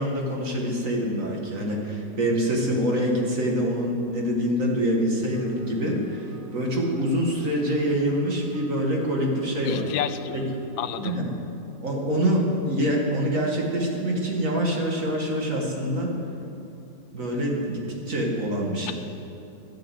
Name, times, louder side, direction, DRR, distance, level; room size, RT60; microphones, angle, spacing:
voice 1, 0.0-9.9 10.3-10.4 11.0-11.3 11.8-16.1 17.1-18.9, equal, 45° right, -1 dB, 2.3 m, -25 dB
sound 1, 5.3-11.1, right 4 dB, 80° right, 1.6 m, -45 dB
voice 2, 9.6-10.5 10.8-11.2 18.9-19.0, left 10 dB, 85° left, 11 dB, 1.4 m, -30 dB
13.0 x 10.5 x 8.0 m, 2.7 s
omnidirectional pair, 2.0 m